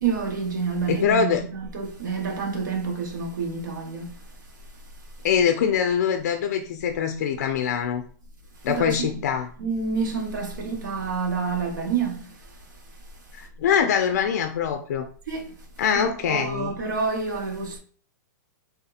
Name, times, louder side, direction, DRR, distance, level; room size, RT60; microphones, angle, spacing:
voice 1, 0.0-4.1 8.7-9.1 9.6-12.4 15.3-15.6 15.9-17.8, right 5 dB, 80° right, 1.0 m, -28 dB
voice 2, 0.9-1.4 5.2-8.0 8.6-9.5 13.3-15.1 15.8-16.7, left 7 dB, 60° left, 0.4 m, -23 dB
3.5 x 2.8 x 2.3 m
hypercardioid pair, 155°, 10 cm